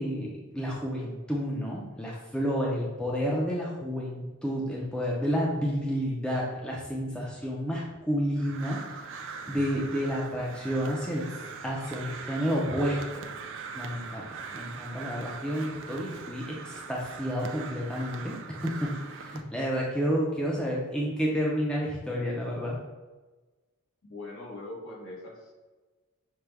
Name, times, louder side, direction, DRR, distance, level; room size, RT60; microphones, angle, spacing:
voice 1, 0.0-11.3 11.6-13.2 13.8-22.8, equal, 5° left, -4 dB, 0.5 m, -30 dB
Crow, 8.4-19.4, right 5 dB, 55° right, 0.3 m, -41 dB
voice 2, 24.0-25.5, left 2 dB, 60° left, -3 dB, 1.1 m, -41 dB
6.0 x 2.2 x 3.3 m, 1.2 s
head